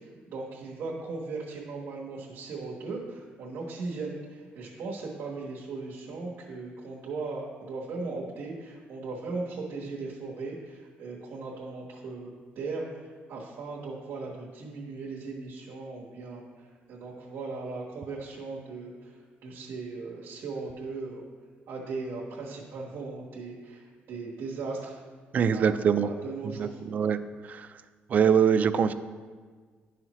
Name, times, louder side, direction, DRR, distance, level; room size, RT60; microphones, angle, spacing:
voice 1, 0.0-21.2 21.7-25.0 25.4-26.8, right 3 dB, 70° right, -4 dB, 1.2 m, -38 dB
voice 2, 25.3-26.1 26.6-27.2 27.4-27.7 28.1-28.9, right 7 dB, 40° right, 11 dB, 0.3 m, -23 dB
11.0 x 5.6 x 3.0 m, 1.6 s
cardioid pair, 155°, 4 cm